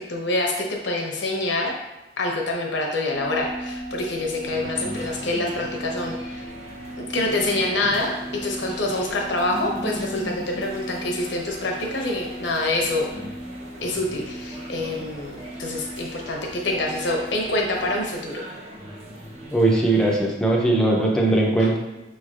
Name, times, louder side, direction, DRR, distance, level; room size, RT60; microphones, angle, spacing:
voice 1, 0.0-1.7 2.2-6.5 7.0-8.1 8.4-13.1 13.8-18.4 21.6-21.7, left 2 dB, 85° left, 0 dB, 0.9 m, -26 dB
sound 1, 3.1-18.0, right 1 dB, 85° right, 0.6 m, -38 dB
sound 2, 4.4-20.2, equal, 35° right, 0.7 m, -39 dB
voice 2, 19.5-21.8, right 2 dB, 5° left, -2 dB, 0.5 m, -19 dB
5.9 x 3.2 x 2.4 m, 1.0 s
head